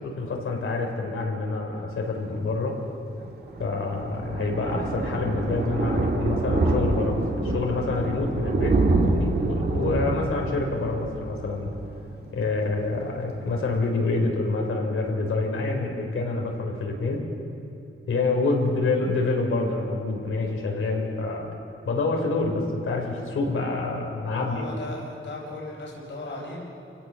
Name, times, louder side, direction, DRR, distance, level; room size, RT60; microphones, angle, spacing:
voice 1, 0.0-2.8 3.6-11.7 12.3-17.2 18.1-21.5 21.9-24.6, left 3 dB, 75° left, 1 dB, 3.8 m, -27 dB
Thunder, 3.2-12.6 12.9-13.2 13.5-13.6 13.7-13.8, right 2 dB, 50° right, 2.5 m, -26 dB
voice 2, 24.2-26.6, left 2 dB, 60° left, -4 dB, 4.7 m, -37 dB
29.5 x 17.0 x 6.3 m, 3.0 s
wide cardioid pair, 160°, 21 cm